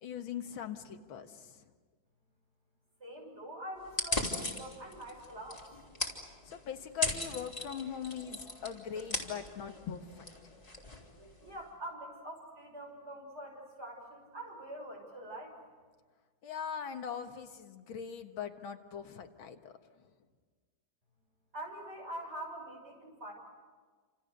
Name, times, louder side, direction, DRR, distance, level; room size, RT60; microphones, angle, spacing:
voice 1, 0.0-1.6 6.4-10.3 16.4-19.7 20.0-20.1, left 8 dB, 90° left, 6 dB, 2.2 m, -41 dB
voice 2, 3.0-5.7 11.4-15.6 21.5-23.3, right 1 dB, 30° right, 0 dB, 7.1 m, -45 dB
sound 1, 3.9-11.6, left 1 dB, 20° left, 3.4 m, -39 dB
29.5 x 27.5 x 6.7 m, 1.5 s
omnidirectional pair, 2.1 m